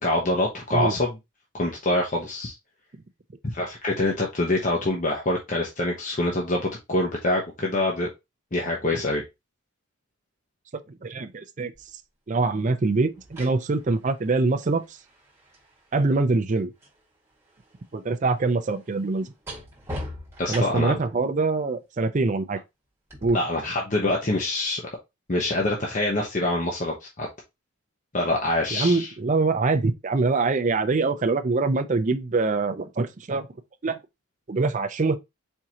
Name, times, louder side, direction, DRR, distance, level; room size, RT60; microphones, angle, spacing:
voice 1, 0.0-1.2 1.5-2.5 3.4-8.1 8.5-9.2 20.4-21.0 23.3-24.8 25.3-27.3 28.1-29.1, left 2 dB, 35° left, 0.9 m, -25 dB
voice 2, 11.0-11.7 12.3-14.8 15.9-16.7 17.9-19.3 20.5-22.6 23.2-23.4 28.7-33.5 33.8-34.0 34.5-35.2, right 3 dB, 35° right, 0.5 m, -24 dB
sound 1, 11.7-11.9 13.0-17.0 17.3-21.1 23.1-23.3, equal, 10° right, 1.8 m, -41 dB
4.5 x 3.7 x 2.8 m
head